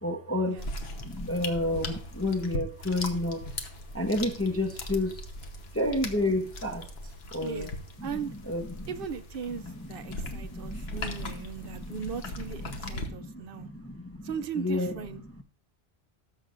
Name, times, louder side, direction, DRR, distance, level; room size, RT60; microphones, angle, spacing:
voice 1, 0.0-0.6 1.0-5.3 5.7-7.7 8.0-8.9 9.5-12.1 12.4-15.0 15.2-15.4, left 1 dB, 15° left, 0.7 m, -32 dB
sound 1, 0.6-13.1, left 2 dB, 60° left, 1.3 m, -39 dB
voice 2, 8.0-8.3 8.9-13.7 14.2-15.2, right 6 dB, 60° right, 0.7 m, -38 dB
18.5 x 6.6 x 2.5 m
omnidirectional pair, 1.2 m